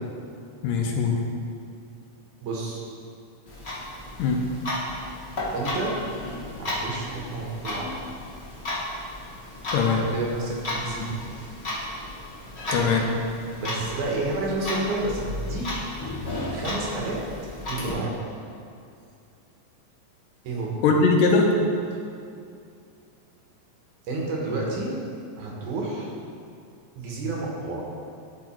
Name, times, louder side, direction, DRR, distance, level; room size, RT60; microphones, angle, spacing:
voice 1, 0.6-1.2 4.2-4.4 9.7-10.1 12.7-13.1 20.8-21.5, left 4 dB, 80° left, 1 dB, 2.3 m, -21 dB
voice 2, 2.4-2.8 5.5-6.0 6.6-7.9 10.1-11.2 12.7-13.0 13.6-15.8 16.5-17.2 17.7-18.1 20.4-20.8 24.1-25.0 25.4-26.1 27.0-27.9, right 2 dB, 65° right, -3 dB, 2.5 m, -30 dB
Clock, 3.5-17.9, left 1 dB, 35° left, 0.9 m, -34 dB
12.5 x 4.9 x 4.4 m, 2.4 s
omnidirectional pair, 4.0 m